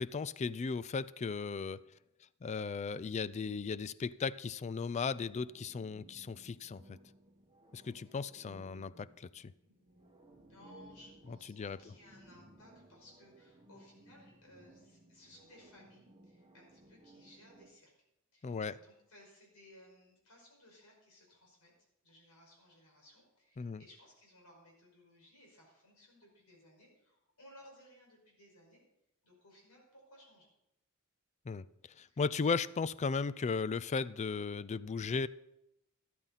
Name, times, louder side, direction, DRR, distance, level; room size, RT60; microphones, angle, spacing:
voice 1, 0.0-1.8 2.4-7.0 7.7-9.5 11.5-11.8 18.4-18.7 23.6-23.8 31.5-31.6 32.0-35.3, left 5 dB, 30° left, 18 dB, 0.3 m, -36 dB
sound 1, 5.4-17.7, right 1 dB, 25° right, 1.4 m, -60 dB
voice 2, 9.6-17.9 18.3-21.7 22.0-28.8 29.2-30.5 32.1-32.5, left 1 dB, 80° left, -1 dB, 5.3 m, -61 dB
12.5 x 12.0 x 4.2 m, 0.85 s
head